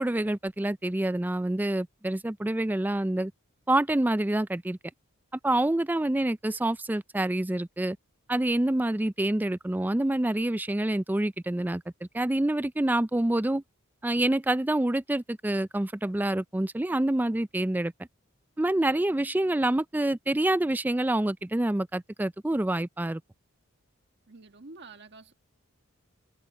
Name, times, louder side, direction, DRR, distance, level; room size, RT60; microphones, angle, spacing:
voice 1, 0.0-3.3 3.7-4.8 5.4-8.0 8.3-11.8 12.1-13.6 14.0-17.9 18.6-23.2, right 1 dB, 10° right, 0.3 m, -27 dB
voice 2, 24.3-25.3, right 3 dB, 55° right, 1.6 m, -48 dB
head